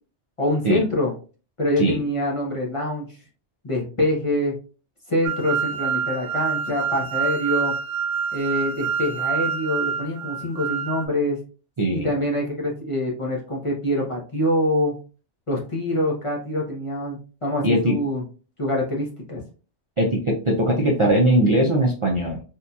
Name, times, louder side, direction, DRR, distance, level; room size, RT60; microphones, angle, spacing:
voice 1, 0.4-1.1 1.6-3.2 3.6-4.6 5.1-7.7 8.3-11.4 11.9-15.0 15.5-18.2 18.6-19.4, left 1 dB, 35° left, -3 dB, 0.7 m, -25 dB
sound 1, 5.2-11.1, right 7 dB, 65° right, 0.8 m, -26 dB
voice 2, 11.8-12.1 17.6-18.0 20.0-22.4, right 1 dB, 40° right, -2 dB, 0.4 m, -20 dB
3.6 x 2.7 x 2.3 m, 0.37 s
omnidirectional pair, 1.2 m